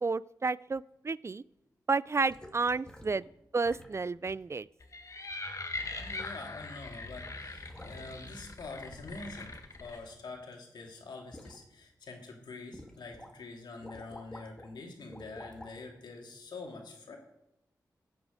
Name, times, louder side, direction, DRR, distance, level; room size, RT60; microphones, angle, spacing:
voice 1, 0.0-1.4 1.9-3.3 3.5-4.7, right 4 dB, 40° right, 20 dB, 0.3 m, -31 dB
sound 1, 2.3-3.2 3.6-4.0 4.3-4.4 5.3-5.4 5.7-6.7 6.9-8.4 9.0-10.6 10.9-11.6 12.1-12.3 12.7-13.3 13.6-14.7 15.1-15.8 16.5-16.6, left 1 dB, 10° left, 2.0 m, -51 dB
sound 2, 4.8-10.0, left 2 dB, 45° left, 1.7 m, -41 dB
voice 2, 6.0-17.2, left 3 dB, 90° left, 1 dB, 2.5 m, -46 dB
15.0 x 8.3 x 5.1 m, 0.86 s
cardioid pair, 50°, 7 cm